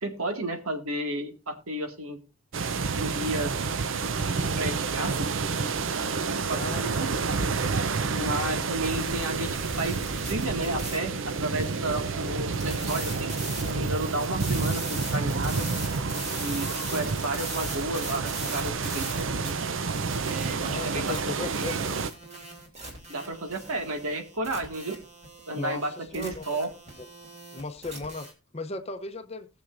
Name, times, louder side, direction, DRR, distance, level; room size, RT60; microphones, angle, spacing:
voice 1, 0.0-2.2 2.9-3.5 4.5-5.3 6.1-7.1 8.1-10.0 10.3-13.4 13.7-15.7 16.4-19.7 20.2-21.7 23.1-25.0 25.5-26.7, right 2 dB, 85° right, 1.9 m, -32 dB
sound 1, 2.5-22.1, right 4 dB, 65° right, 0.6 m, -29 dB
voice 2, 6.5-6.8 20.6-22.0 25.6-26.5 27.0-27.1 27.5-29.5, left 3 dB, 30° left, 0.7 m, -37 dB
sound 2, 8.8-28.3, right 2 dB, 30° right, 2.8 m, -40 dB
20.5 x 7.0 x 2.6 m
head